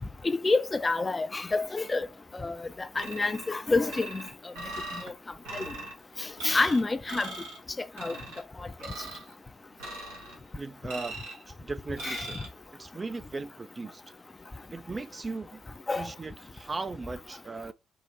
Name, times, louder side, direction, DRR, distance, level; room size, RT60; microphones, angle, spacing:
voice 1, 0.2-2.1 2.3-4.2 5.0-5.1 5.5-5.7 6.2-7.3 7.8-8.2 12.0-12.3 15.9-16.1, left 3 dB, 25° left, 0.5 m, -28 dB
sound 1, 3.0-3.5 3.9-5.1 5.4-5.9 6.4-6.8 7.1-7.6 8.0-8.4 8.8-9.3 9.8-10.4 10.9-11.4 12.0-12.5, right 2 dB, 85° right, 1.4 m, -40 dB
voice 2, 10.6-11.2 11.5-12.4 12.7-14.0 14.7-15.6 16.0-17.7, right 3 dB, 30° right, 0.4 m, -37 dB
4.7 x 2.1 x 4.0 m
hypercardioid pair, 50°, 0 cm